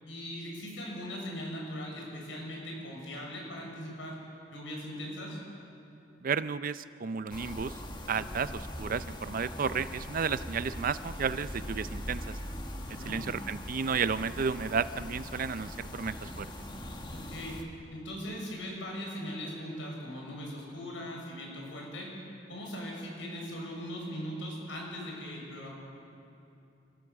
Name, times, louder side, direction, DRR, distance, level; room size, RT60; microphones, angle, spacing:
voice 1, 0.0-4.2 4.5-5.4 12.8-13.2 17.1-17.6 17.9-22.2 22.5-25.7, equal, 90° left, -1 dB, 6.6 m, -40 dB
voice 2, 6.2-7.7 8.1-12.4 13.1-16.5, right 6 dB, 50° right, 14 dB, 0.5 m, -32 dB
sound 1, 7.3-17.6, left 1 dB, 25° left, 1.6 m, -41 dB
28.5 x 15.5 x 7.1 m, 2.7 s
head